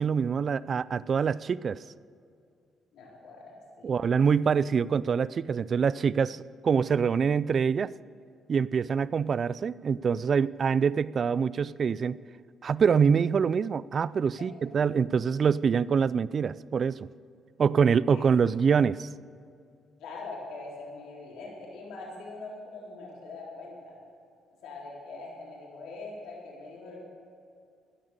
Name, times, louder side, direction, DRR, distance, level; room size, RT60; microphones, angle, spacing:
voice 1, 0.0-1.8 3.8-7.9 8.5-12.2 12.6-17.1 17.6-19.1, right 6 dB, 50° right, 19 dB, 0.3 m, -25 dB
voice 2, 2.9-4.0 18.1-18.2 20.0-24.0 24.6-27.0, left 3 dB, 85° left, -3 dB, 3.8 m, -42 dB
15.0 x 10.5 x 6.7 m, 2.4 s
cardioid pair, 90°, 0 cm